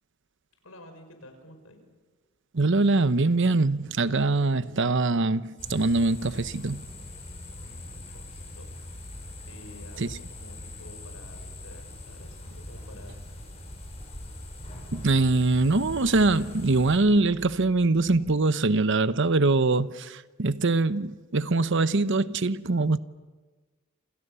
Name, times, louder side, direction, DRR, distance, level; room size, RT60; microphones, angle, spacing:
voice 1, 0.6-1.8 7.5-8.7 9.4-13.3, left 1 dB, 85° left, 5.9 m, -50 dB
voice 2, 2.5-6.8 10.0-10.1 14.9-23.0, right 3 dB, 60° right, 0.9 m, -23 dB
sound 1, 5.6-17.0, left 1 dB, 30° left, 7.0 m, -42 dB
sound 2, 8.9-18.3, equal, 30° right, 3.7 m, -49 dB
29.0 x 27.0 x 6.9 m
head